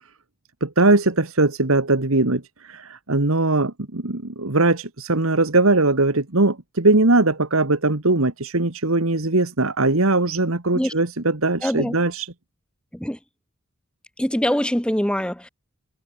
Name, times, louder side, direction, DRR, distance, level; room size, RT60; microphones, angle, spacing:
voice 1, 0.6-12.3, right 2 dB, 65° right, 1.8 m, -20 dB
voice 2, 11.6-12.0 12.9-13.2 14.2-15.5, equal, 5° left, 1.5 m, -23 dB
head